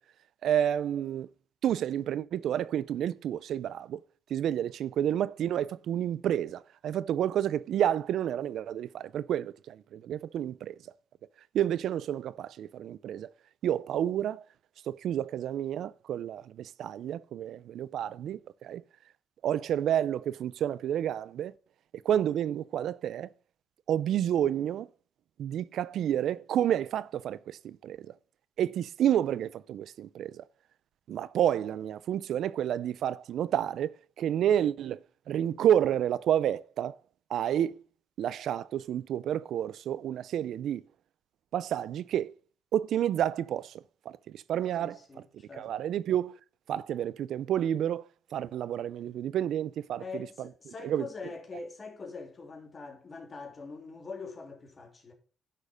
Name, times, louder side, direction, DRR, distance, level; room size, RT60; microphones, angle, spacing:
voice 1, 0.4-1.3 1.6-4.0 4.3-10.9 11.5-13.3 13.6-14.5 14.8-18.8 19.4-21.5 21.9-23.3 23.9-24.9 25.4-28.2 28.6-30.5 31.1-37.0 37.3-37.8 38.2-40.8 41.5-42.3 42.7-45.2 45.5-46.4 46.7-50.5 50.8-51.1, right 10 dB, 75° right, 0.4 m, -30 dB
voice 2, 44.8-45.7 50.0-55.1, left 4 dB, 35° left, 3.2 m, -43 dB
10.0 x 6.5 x 5.1 m
cardioid pair, 90°, 0 cm